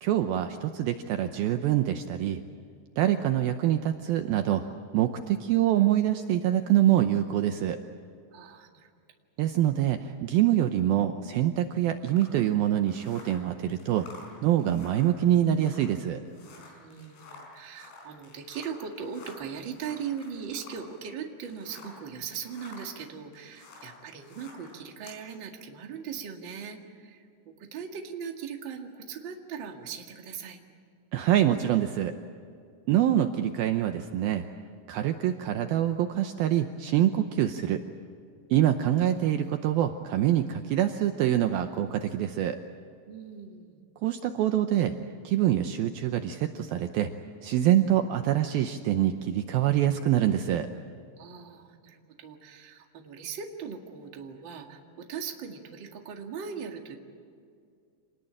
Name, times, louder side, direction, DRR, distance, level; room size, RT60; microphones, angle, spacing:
voice 1, 0.0-2.4 3.0-4.6 4.9-7.8 9.4-14.1 14.4-16.2 31.1-32.2 32.9-34.4 34.9-37.8 38.5-42.6 44.0-45.0 45.2-47.1 47.4-50.7, right 11 dB, 90° right, 7 dB, 2.1 m, -25 dB
voice 2, 8.3-8.9 16.6-30.6 43.0-43.8 51.2-57.0, right 7 dB, 45° right, 2 dB, 1.5 m, -39 dB
sound 1, 12.1-22.1 22.4-25.2, left 4 dB, 75° left, 7.0 m, -51 dB
27.0 x 20.5 x 8.8 m, 2.3 s
omnidirectional pair, 5.4 m